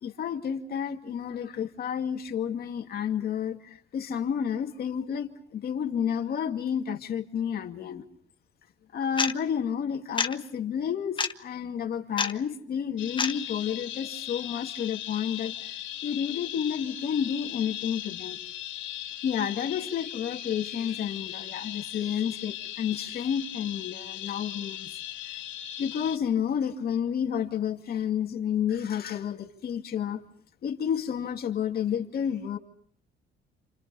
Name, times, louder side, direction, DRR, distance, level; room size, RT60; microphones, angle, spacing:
voice 1, 0.0-8.1 8.9-15.5 16.0-18.4 19.2-24.9 25.8-30.2 30.6-32.6, left 8 dB, 50° left, 3 dB, 2.5 m, -30 dB
sound 1, 9.2-9.3 10.2-10.3 11.2-11.3 12.2-12.3 13.2-13.3, left 5 dB, 25° left, 1.1 m, -26 dB
sound 2, 13.0-26.2, left 12 dB, 85° left, 1.5 m, -38 dB
29.0 x 28.0 x 5.5 m, 0.62 s
cardioid pair, 130°, 20 cm